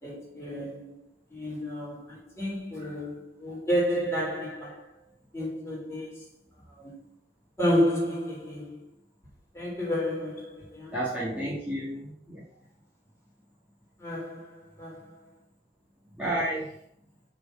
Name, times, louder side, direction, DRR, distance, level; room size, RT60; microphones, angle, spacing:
voice 1, 0.0-4.9 5.3-6.3 6.7-6.9 7.6-8.9 9.5-11.0 14.0-15.3, equal, 15° left, 3.8 m, -31 dB
voice 2, 10.9-12.4 16.2-16.8, right 1 dB, 10° right, 1.9 m, -31 dB
6.7 x 4.6 x 6.8 m
head